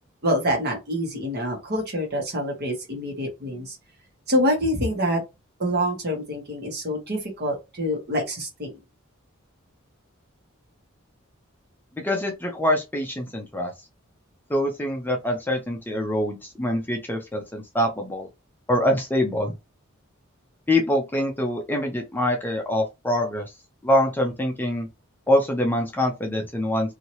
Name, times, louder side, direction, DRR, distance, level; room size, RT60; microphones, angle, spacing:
voice 1, 0.2-3.8 4.3-5.2 5.6-8.7, equal, 50° right, 1.3 m, -26 dB
voice 2, 12.0-13.7 14.5-18.3 18.7-19.5 20.7-23.5 23.8-24.9 25.3-26.9, left 1 dB, 10° left, 0.6 m, -24 dB
2.8 x 2.8 x 3.0 m
head